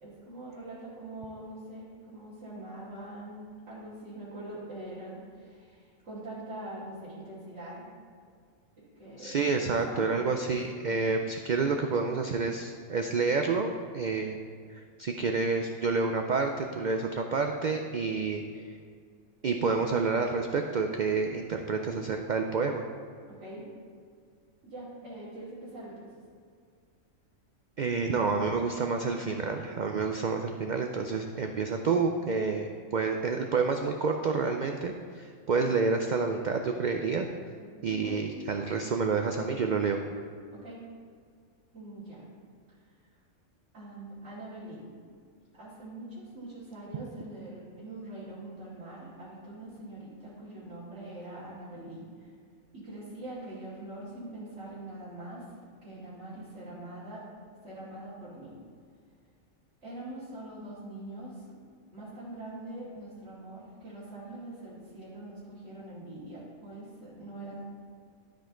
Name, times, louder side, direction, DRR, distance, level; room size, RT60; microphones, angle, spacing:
voice 1, 0.0-7.9 8.8-10.5 10.9-11.3 23.3-23.7 24.6-26.1 37.7-38.2 40.5-40.8 41.7-42.3 43.7-44.8 45.5-52.3 52.7-55.4 55.8-57.2 57.6-58.5 59.8-61.6 61.9-67.6, right 1 dB, 65° right, -13 dB, 3.0 m, -43 dB
voice 2, 9.2-14.4 14.7-18.6 19.4-22.8 27.8-37.3 37.8-40.0, right 4 dB, 85° right, 4 dB, 0.4 m, -29 dB
12.5 x 5.2 x 3.7 m, 2.1 s
omnidirectional pair, 1.4 m